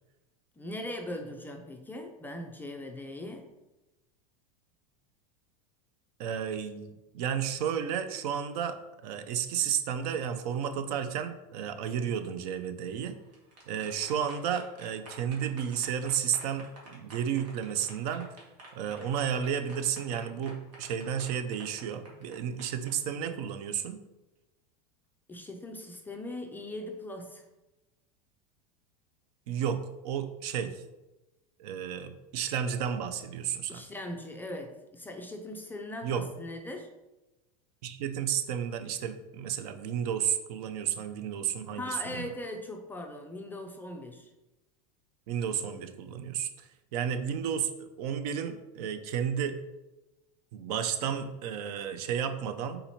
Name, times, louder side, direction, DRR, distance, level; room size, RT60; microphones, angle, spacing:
voice 1, 0.6-3.5 25.3-27.4 33.7-36.9 41.8-44.3, left 1 dB, 10° left, 3 dB, 0.3 m, -40 dB
voice 2, 6.2-13.1 13.7-18.3 18.7-24.0 29.5-30.8 31.6-33.8 36.0-36.2 37.8-42.3 45.3-49.6 50.5-52.8, right 8 dB, 65° right, 9 dB, 0.5 m, -32 dB
sound 1, 13.1-22.9, right 2 dB, 90° right, 1.5 m, -51 dB
3.8 x 2.9 x 4.2 m, 1.0 s
supercardioid pair, 130°, 21 cm